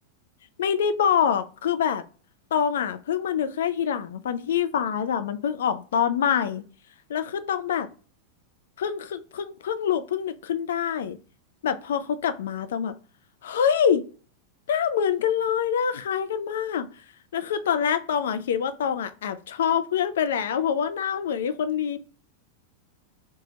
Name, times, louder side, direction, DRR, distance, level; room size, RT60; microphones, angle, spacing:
voice 1, 0.6-2.0 2.5-6.6 7.1-7.9 8.8-11.2 11.6-13.0 13.4-14.1 14.7-16.9 17.3-22.0, left 8 dB, 60° left, 0.4 m, -25 dB
3.3 x 2.2 x 3.9 m
figure-of-eight pair, 90°, 0 cm